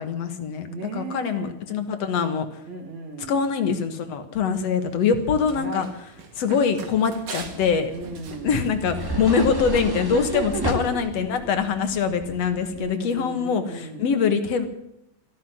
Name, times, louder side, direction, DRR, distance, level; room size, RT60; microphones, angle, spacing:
voice 1, 0.0-0.7 0.9-2.6 3.3-5.9 6.3-7.9 8.4-14.7, left 6 dB, 55° left, 8 dB, 2.3 m, -23 dB
voice 2, 0.7-1.5 2.6-3.4 5.5-5.9 7.9-8.7 10.1-11.0 12.7-14.1, right 3 dB, 55° right, -2 dB, 3.4 m, -35 dB
Run, 4.8-10.0, right 6 dB, 75° right, 3.7 m, -43 dB
sound 1, 7.4-12.9, equal, 15° right, 0.8 m, -33 dB
14.0 x 13.5 x 7.5 m, 0.82 s
omnidirectional pair, 3.9 m